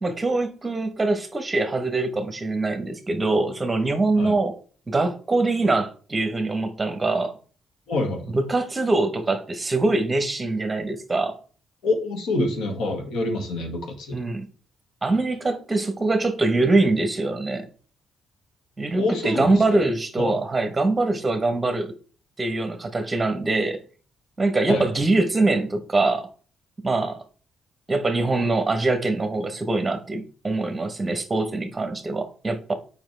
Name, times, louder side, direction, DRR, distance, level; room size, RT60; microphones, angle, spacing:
voice 1, 0.0-4.6 4.9-7.4 8.3-11.4 14.1-14.5 15.0-17.7 18.8-21.9 22.4-23.8 24.4-26.3 26.8-27.2 27.9-32.7, right 2 dB, 25° right, 1.0 m, -23 dB
voice 2, 7.9-8.4 11.8-14.2 19.0-19.9 20.2-20.4 24.7-24.9, left 2 dB, 80° left, 1.7 m, -26 dB
7.2 x 5.2 x 3.3 m
cardioid pair, 90°, 0 cm